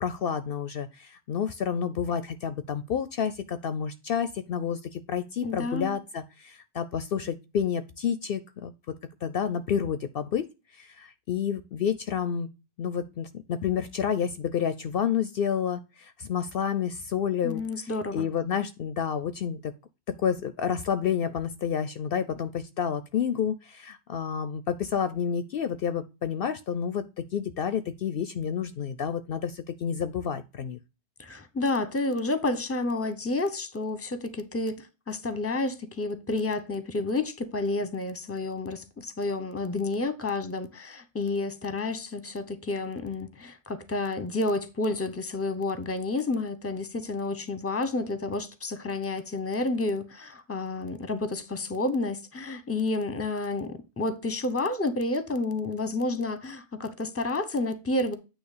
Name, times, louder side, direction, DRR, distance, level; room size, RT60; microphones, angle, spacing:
voice 1, 0.0-8.7 9.2-10.5 10.7-12.5 12.8-19.7 20.2-27.0 27.3-30.8, left 8 dB, 65° left, 0.7 m, -29 dB
voice 2, 5.4-6.0 17.4-18.3 31.2-34.8 35.1-58.2, left 2 dB, 15° left, 0.8 m, -30 dB
8.9 x 3.0 x 6.5 m
omnidirectional pair, 1.1 m